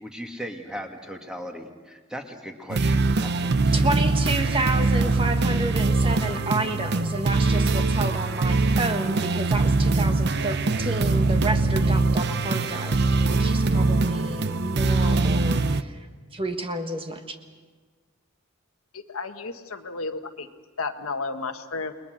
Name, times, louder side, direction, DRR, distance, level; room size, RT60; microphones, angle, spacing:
voice 1, 0.0-4.2 4.6-4.9, equal, 5° right, 3 dB, 2.0 m, -38 dB
sound 1, 2.7-15.8, right 3 dB, 50° right, 0.7 m, -22 dB
voice 2, 3.7-16.0 16.3-17.4, right 2 dB, 25° right, 6 dB, 1.5 m, -30 dB
voice 3, 18.9-20.5 20.8-21.9, left 4 dB, 85° left, 7 dB, 1.5 m, -32 dB
29.5 x 21.0 x 6.5 m, 1.5 s
head